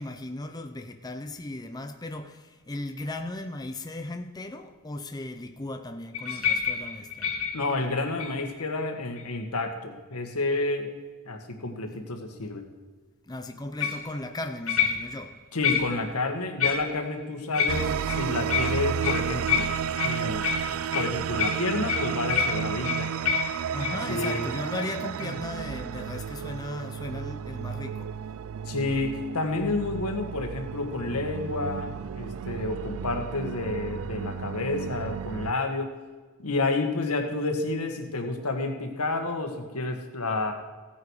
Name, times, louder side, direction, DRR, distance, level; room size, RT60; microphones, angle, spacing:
voice 1, 0.0-7.3 13.3-15.4 23.7-28.1, left 2 dB, 20° left, 0.6 m, -36 dB
sound 1, 6.1-8.6 9.2-9.6 13.8-14.1 14.7-15.3 15.6-16.1 16.6-17.2 17.5-24.4 24.8-24.9 25.2-25.3, left 7 dB, 65° left, 2.2 m, -29 dB
voice 2, 7.5-10.9 11.2-12.6 15.5-19.7 20.0-20.5 20.9-23.1 23.9-24.6 28.6-35.9 36.4-40.5, left 2 dB, 90° left, 1.7 m, -30 dB
sound 2, 17.7-35.5, right 8 dB, 65° right, 0.3 m, -32 dB
16.0 x 8.9 x 4.8 m
head